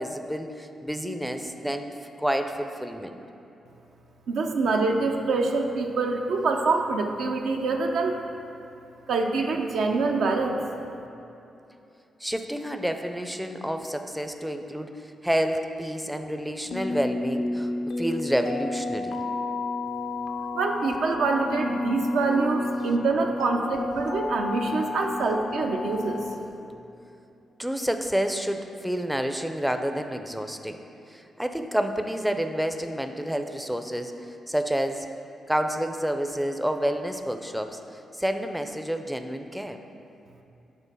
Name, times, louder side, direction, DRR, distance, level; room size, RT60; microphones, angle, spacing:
voice 1, 0.0-3.2 12.2-17.7 18.0-19.2 27.6-30.8 31.1-35.1 35.5-39.8, equal, 5° right, 6 dB, 0.4 m, -29 dB
voice 2, 4.3-8.2 9.1-10.6 20.5-26.2, right 3 dB, 80° right, 3 dB, 0.5 m, -25 dB
sound 1, 16.7-26.4, left 2 dB, 70° left, 0.4 m, -31 dB
6.1 x 3.5 x 5.4 m, 2.9 s
supercardioid pair, 55°, 0 cm